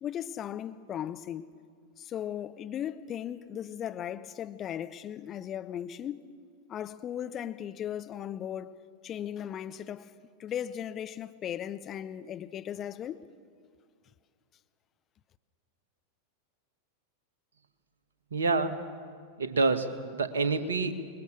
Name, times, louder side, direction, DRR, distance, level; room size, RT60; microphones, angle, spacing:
voice 1, 0.0-1.5 2.0-6.2 6.7-8.7 9.0-10.1 10.4-13.3, left 10 dB, 30° left, 0.8 m, -37 dB
voice 2, 18.3-18.8 19.4-20.9, right 3 dB, 70° right, 1.7 m, -27 dB
26.5 x 21.5 x 6.6 m
figure-of-eight pair, 90°, 0 cm